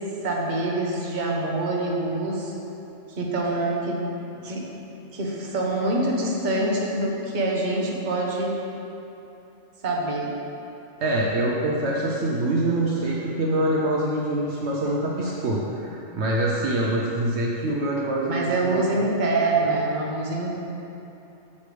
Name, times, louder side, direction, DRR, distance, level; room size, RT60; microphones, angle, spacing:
voice 1, 0.2-2.5 3.2-4.0 4.4-4.6 5.1-8.5 9.8-10.3 18.3-20.5, right 2 dB, 40° right, -2 dB, 1.0 m, -25 dB
voice 2, 11.0-18.8, right 1 dB, 65° right, -3 dB, 1.0 m, -25 dB
8.4 x 6.8 x 3.3 m, 2.8 s
omnidirectional pair, 1.3 m